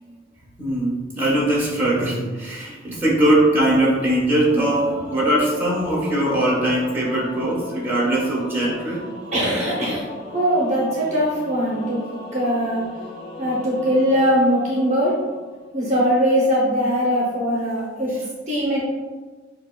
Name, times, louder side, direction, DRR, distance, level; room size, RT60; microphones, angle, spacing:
voice 1, 0.6-9.0, right 1 dB, 10° right, -6 dB, 1.0 m, -21 dB
Singing / Musical instrument, 4.4-15.6, left 2 dB, 25° left, 1.0 m, -38 dB
voice 2, 9.3-10.0 10.3-12.0 12.3-12.8 13.4-15.1 15.7-18.1 18.5-18.8, equal, 35° right, -5 dB, 0.7 m, -21 dB
6.2 x 2.3 x 2.2 m, 1.3 s
head